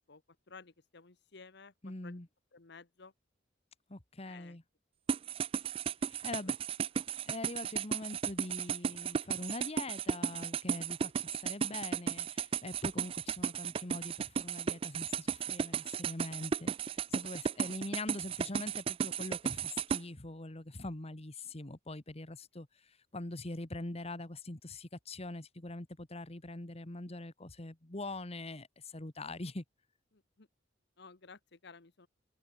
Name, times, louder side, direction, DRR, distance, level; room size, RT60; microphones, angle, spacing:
voice 1, 0.5-1.7 2.0-2.2 2.5-3.1 4.2-4.6 6.2-6.5 30.1-30.5 31.0-32.1, left 4 dB, 65° left, 1.2 m, -54 dB
voice 2, 1.8-2.3 3.9-4.6 6.0-6.6 7.3-29.6, left 2 dB, 35° left, 1.6 m, -43 dB
sound 1, 5.1-20.0, right 7 dB, 30° right, 0.3 m, -34 dB
open air
head